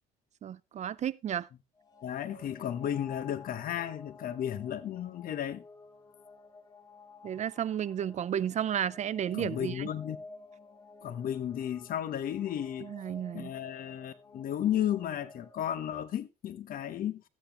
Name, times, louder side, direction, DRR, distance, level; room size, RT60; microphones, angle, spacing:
voice 1, 0.4-1.5 7.2-9.9 12.8-13.5, right 9 dB, 45° right, 0.5 m, -32 dB
sound 1, 1.7-15.9, left 4 dB, 20° left, 2.1 m, -53 dB
voice 2, 2.0-5.6 9.3-10.2 11.0-12.9 13.3-17.2, left 10 dB, 60° left, 1.1 m, -34 dB
13.5 x 9.3 x 3.0 m
cardioid pair, 110°, 17 cm